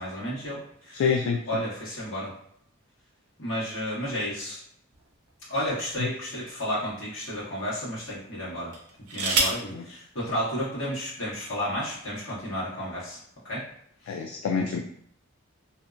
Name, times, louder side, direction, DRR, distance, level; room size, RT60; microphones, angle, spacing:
voice 1, 0.0-1.0 1.5-2.3 3.4-4.6 5.5-8.7 9.1-13.2 13.4-13.7 14.0-14.2, equal, 60° left, -7 dB, 1.3 m, -32 dB
voice 2, 0.9-1.4 9.7-9.8 14.1-14.8, left 6 dB, 80° left, 1 dB, 0.3 m, -26 dB
sound 1, 4.9-6.2 6.9-7.0 8.7-9.7 10.9-11.0 11.3-11.7, right 3 dB, 90° right, 0.5 m, -29 dB
2.6 x 2.1 x 2.4 m, 0.67 s
head